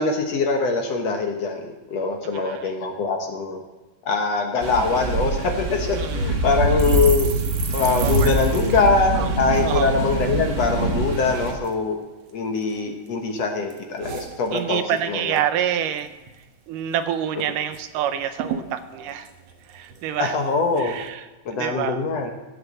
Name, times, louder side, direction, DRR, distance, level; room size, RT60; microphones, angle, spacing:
voice 1, 0.0-3.6 4.1-7.3 7.7-12.0 12.3-14.8 15.1-15.4 20.2-21.0 21.5-22.3, left 4 dB, 60° left, 3 dB, 2.0 m, -23 dB
voice 2, 2.3-2.7 6.0-6.3 8.0-8.8 9.2-9.3 9.6-9.9 14.5-16.1 16.7-19.3 19.7-20.4 20.8-21.3 21.5-22.0, right 10 dB, 80° right, 10 dB, 2.3 m, -27 dB
Heavy Rain And Loud Thunder, 4.6-11.5, right 1 dB, 40° right, 1.6 m, -24 dB
sound 1, 6.8-10.3 10.6-10.8 11.1-11.7 12.3-13.1 13.4-15.0 15.3-15.6 15.8-16.4 16.8-16.9 17.1-17.8 18.1-18.2 18.4-20.3 20.8-21.1, right 7 dB, 55° right, 2.1 m, -35 dB
16.0 x 6.9 x 7.4 m, 1.2 s
omnidirectional pair, 3.8 m